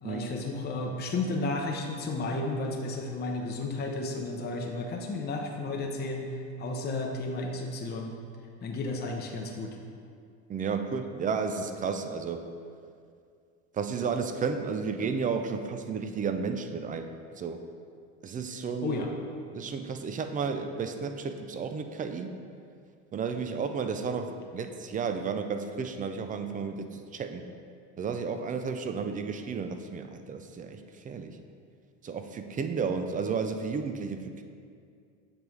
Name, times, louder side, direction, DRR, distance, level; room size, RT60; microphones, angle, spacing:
voice 1, 0.0-8.1 8.6-9.8 18.8-19.1, left 2 dB, 25° left, 1 dB, 0.7 m, -33 dB
voice 2, 10.5-12.5 13.8-17.7 18.2-19.0 19.5-22.3 23.1-26.9 27.1-27.4 28.0-30.8 31.1-31.3 32.0-34.4, right 5 dB, 25° right, 7 dB, 0.4 m, -32 dB
7.4 x 3.3 x 4.6 m, 2.3 s
supercardioid pair, 95°, 36 cm